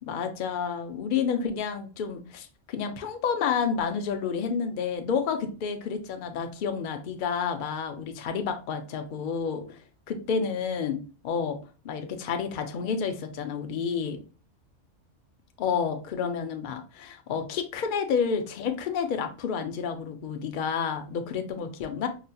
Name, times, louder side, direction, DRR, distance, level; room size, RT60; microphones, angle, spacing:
voice 1, 0.0-9.8 10.1-11.6 11.8-14.2 15.6-22.1, left 6 dB, 55° left, 7 dB, 0.6 m, -30 dB
4.8 x 2.7 x 2.2 m, 0.35 s
omnidirectional pair, 1.3 m